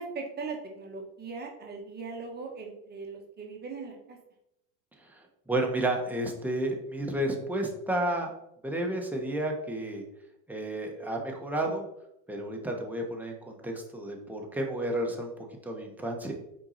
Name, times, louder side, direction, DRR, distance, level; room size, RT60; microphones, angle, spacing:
voice 1, 0.0-4.2, right 4 dB, 30° right, 0 dB, 1.6 m, -39 dB
voice 2, 5.5-8.3 8.6-10.0 10.5-11.8 12.3-16.3, right 1 dB, 5° right, 0 dB, 1.3 m, -31 dB
6.1 x 4.7 x 4.2 m, 0.82 s
supercardioid pair, 120°, 34 cm